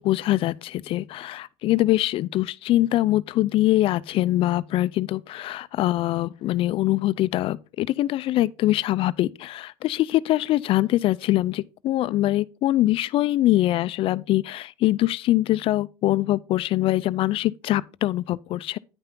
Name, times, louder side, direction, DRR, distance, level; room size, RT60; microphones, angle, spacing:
voice 1, 0.0-18.8, left 15 dB, 50° left, 0.4 m, -23 dB
9.8 x 5.7 x 3.7 m
supercardioid pair, 110°, 12 cm